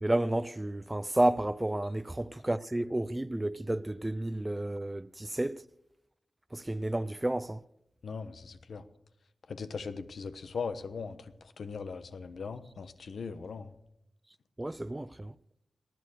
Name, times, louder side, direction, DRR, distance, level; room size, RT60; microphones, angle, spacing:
voice 1, 0.0-5.6 6.5-7.6 14.6-15.3, right 1 dB, 15° right, 0.5 m, -31 dB
voice 2, 8.0-8.8 9.5-11.2 11.6-13.7, left 5 dB, 80° left, 1.2 m, -39 dB
19.0 x 11.0 x 6.5 m
wide cardioid pair, 90°, 0 cm